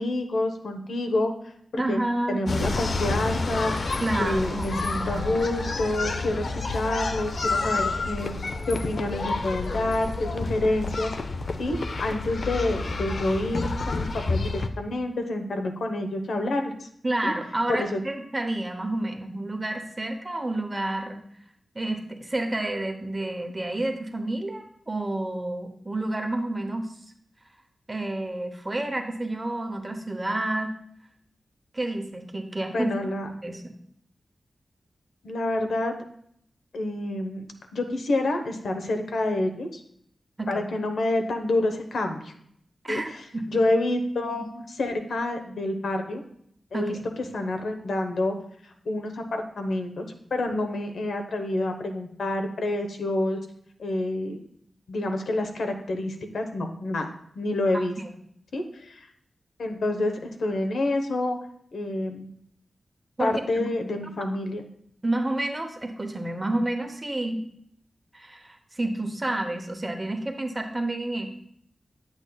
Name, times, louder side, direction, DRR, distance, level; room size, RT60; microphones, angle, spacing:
voice 1, 0.0-2.0 2.3-3.7 4.2-8.4 8.7-11.1 11.6-16.9 17.2-17.3 17.7-18.0 32.7-33.3 35.2-35.9 36.7-37.4 37.7-39.8 40.5-42.3 42.9-46.2 46.7-47.0 47.3-48.3 48.8-53.4 53.8-54.4 54.9-57.1 57.4-58.0 58.5-59.0 59.6-61.4 61.7-62.3 63.2-64.6, left 2 dB, 85° left, 5 dB, 0.9 m, -28 dB
voice 2, 1.8-2.4 4.0-5.5 17.0-21.2 21.7-26.9 27.9-30.7 31.7-32.9 33.4-33.6 40.4-40.7 42.8-43.6 46.7-47.0 57.7-58.1 63.2-63.7 65.0-67.4 68.1-71.3, right 1 dB, 20° right, 5 dB, 0.8 m, -30 dB
sound 1, 2.5-14.7, left 3 dB, 50° left, 0.5 m, -29 dB
9.4 x 8.1 x 2.3 m, 0.68 s
wide cardioid pair, 165°, 0 cm